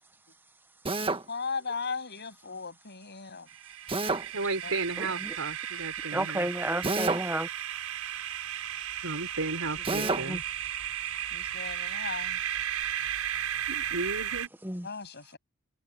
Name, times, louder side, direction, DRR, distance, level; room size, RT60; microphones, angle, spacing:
Drill, 0.9-1.3 3.9-4.3 6.8-7.3 9.8-10.3, right 3 dB, 25° right, 1.6 m, -28 dB
voice 1, 1.3-3.5 4.6-4.7 11.3-12.4 14.8-15.4, left 5 dB, 50° left, 7.7 m, -37 dB
sound 1, 3.5-14.5, right 10 dB, 80° right, 5.8 m, -35 dB
voice 2, 4.3-6.5 9.0-10.4 13.7-14.5, right 3 dB, 65° right, 5.5 m, -34 dB
voice 3, 5.0-5.3 6.1-7.5 9.9-10.4 14.6-14.9, right 1 dB, 10° right, 1.1 m, -32 dB
head